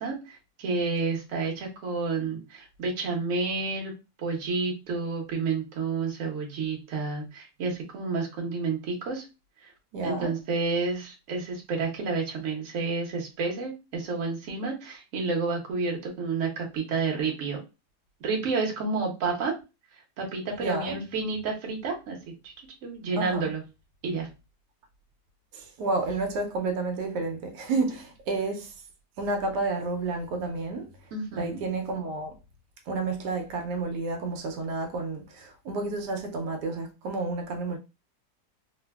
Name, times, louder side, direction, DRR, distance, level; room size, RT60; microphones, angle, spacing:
voice 1, 0.0-3.9 4.2-9.3 9.6-9.7 10.0-17.6 18.2-19.5 20.2-22.2 22.4-22.5 22.8-23.6 24.0-24.3 31.1-31.6, right 4 dB, 60° right, 1.1 m, -30 dB
voice 2, 9.9-10.3 20.6-21.0 23.2-23.5 25.5-28.7 29.2-30.9 31.3-32.3 32.9-37.8, right 3 dB, 85° right, 1.2 m, -30 dB
3.2 x 2.1 x 2.2 m
omnidirectional pair, 1.8 m